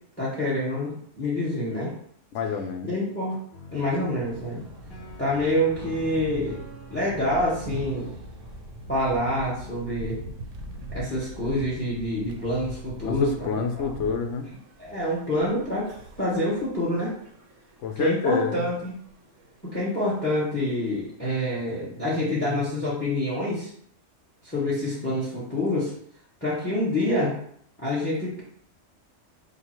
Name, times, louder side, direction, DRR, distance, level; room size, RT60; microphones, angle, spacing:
voice 1, 0.2-1.9 2.8-3.4 3.7-4.6 5.2-6.6 6.9-8.1 8.9-10.2 10.9-13.9 14.8-15.9 16.2-17.1 18.0-18.9 19.7-23.7 24.4-25.9 26.4-27.3 27.8-28.4, left 1 dB, 10° left, -6 dB, 1.1 m, -27 dB
voice 2, 2.3-2.9 13.0-14.5 17.8-18.7, left 5 dB, 75° left, 6 dB, 0.9 m, -27 dB
sound 1, 3.5-9.9, equal, 45° left, 1.2 m, -45 dB
sound 2, 4.1-21.1, right 1 dB, 75° right, 1.1 m, -43 dB
5.2 x 2.2 x 4.4 m, 0.67 s
omnidirectional pair, 1.3 m